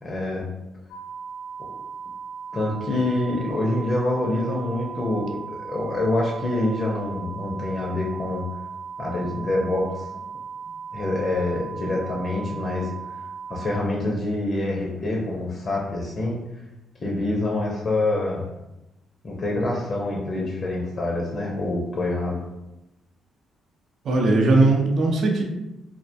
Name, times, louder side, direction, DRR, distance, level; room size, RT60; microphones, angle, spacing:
voice 1, 0.0-0.5 2.5-8.4 9.0-10.2 10.9-13.2 13.5-16.4 17.0-18.4 19.2-22.4, left 2 dB, 40° left, -2 dB, 0.5 m, -26 dB
sound 1, 0.9-13.8, right 6 dB, 80° left, 0.7 m, -37 dB
voice 2, 24.0-25.4, right 2 dB, 60° right, 0 dB, 0.5 m, -19 dB
2.2 x 2.1 x 2.6 m, 0.93 s
cardioid pair, 90°, 0 cm